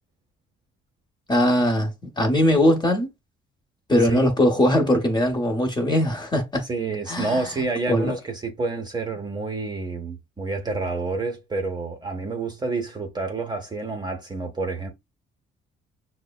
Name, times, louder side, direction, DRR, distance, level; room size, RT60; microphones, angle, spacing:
voice 1, 1.3-3.1 3.9-6.7 7.1-7.5 7.9-8.1, left 1 dB, 20° left, 1.1 m, -20 dB
voice 2, 6.7-14.9, right 3 dB, 20° right, 0.8 m, -28 dB
6.4 x 2.1 x 2.3 m
cardioid pair, 115°, 21 cm